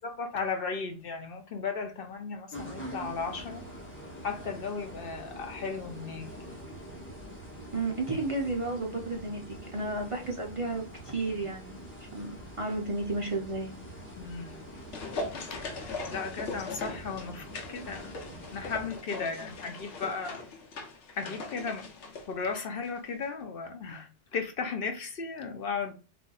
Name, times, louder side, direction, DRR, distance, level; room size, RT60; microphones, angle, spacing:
voice 1, 0.0-3.6 4.2-6.6 14.2-14.6 16.1-18.1 18.5-20.5 21.2-21.9 22.3-26.0, left 5 dB, 60° left, 0.8 m, -35 dB
sound 1, 2.5-19.0, right 1 dB, 10° left, 1.3 m, -45 dB
voice 2, 7.6-13.7, right 2 dB, 35° right, 0.6 m, -33 dB
sound 2, 14.4-23.0 23.2-23.3, left 3 dB, 85° left, 1.1 m, -40 dB
4.0 x 2.6 x 2.3 m
omnidirectional pair, 1.2 m